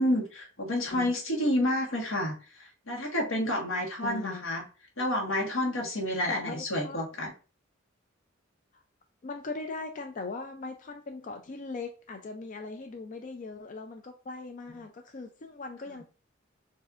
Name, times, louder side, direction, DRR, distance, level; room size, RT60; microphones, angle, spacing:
voice 1, 0.0-2.3 2.9-4.6 5.0-7.3, left 1 dB, 90° left, -1 dB, 1.4 m, -29 dB
voice 2, 4.0-4.6 6.3-7.0 9.2-16.0, left 3 dB, 40° left, 5 dB, 0.4 m, -39 dB
6.3 x 2.7 x 2.4 m, 0.35 s
head